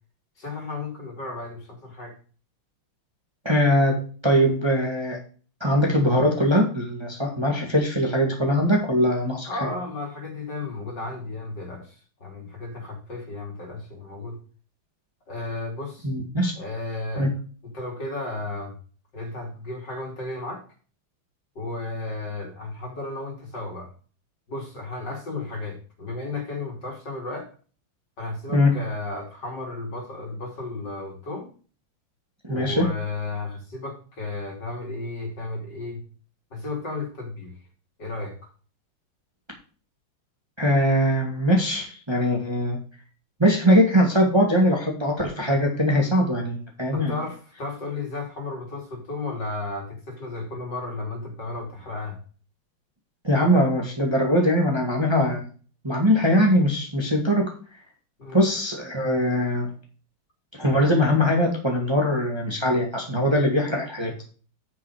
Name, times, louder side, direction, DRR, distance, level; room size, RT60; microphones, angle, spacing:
voice 1, 0.4-2.2 9.5-14.4 15.3-16.1 16.5-17.3 17.6-18.7 19.1-20.6 21.5-23.9 24.5-27.5 28.2-31.5 32.5-36.0 36.5-37.5 38.0-38.5 46.9-52.2 58.2-58.4, left 2 dB, 55° left, 1 dB, 3.5 m, -34 dB
voice 2, 3.4-4.0 4.2-5.2 5.6-9.7 16.0-16.5 17.2-17.3 28.5-28.7 32.4-32.9 40.6-42.8 43.4-47.2 53.2-55.4 55.8-57.5 58.3-59.7 60.5-64.2, equal, 15° right, 0 dB, 2.0 m, -21 dB
9.5 x 5.6 x 4.9 m, 0.39 s
omnidirectional pair, 2.3 m